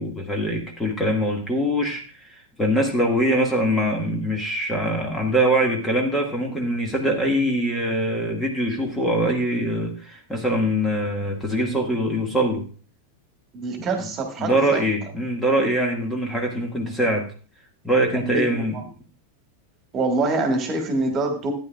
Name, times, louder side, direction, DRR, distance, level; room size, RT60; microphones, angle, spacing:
voice 1, 0.0-12.7 14.0-14.1 14.4-17.3 17.8-18.8, right 1 dB, 10° left, 1 dB, 1.9 m, -23 dB
voice 2, 13.5-14.8 18.3-18.5 19.9-21.5, right 2 dB, 30° right, 5 dB, 2.2 m, -25 dB
13.5 x 9.5 x 2.4 m, 0.38 s
figure-of-eight pair, 90°, 0 cm